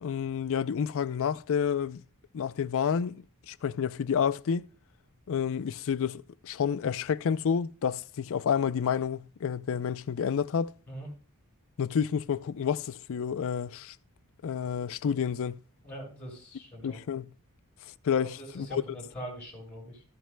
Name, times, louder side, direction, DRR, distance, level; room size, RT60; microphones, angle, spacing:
voice 1, 0.0-2.0 2.3-4.7 5.3-10.7 11.8-14.0 14.4-15.6 16.8-17.3 18.0-18.8, left 7 dB, 65° left, 0.4 m, -29 dB
voice 2, 15.8-17.0 18.2-20.0, right 1 dB, 5° left, 5.9 m, -42 dB
14.5 x 9.1 x 2.2 m
head